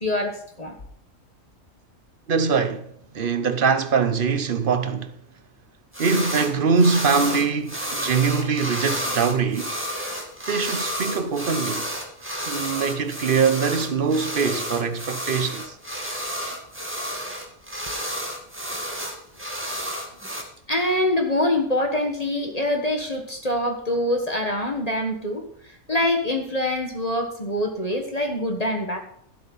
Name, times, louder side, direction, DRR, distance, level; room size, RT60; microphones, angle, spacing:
voice 1, 0.0-0.8 4.7-4.9 20.7-25.5 25.9-29.0, left 1 dB, 30° left, 1.5 m, -25 dB
voice 2, 2.3-2.9 3.1-5.1 6.0-9.8 10.5-11.9 12.5-15.7, right 5 dB, 45° right, 0.9 m, -23 dB
sound 1, 5.9-6.5 6.8-20.4, equal, 10° right, 2.0 m, -31 dB
13.0 x 8.1 x 5.5 m
omnidirectional pair, 1.4 m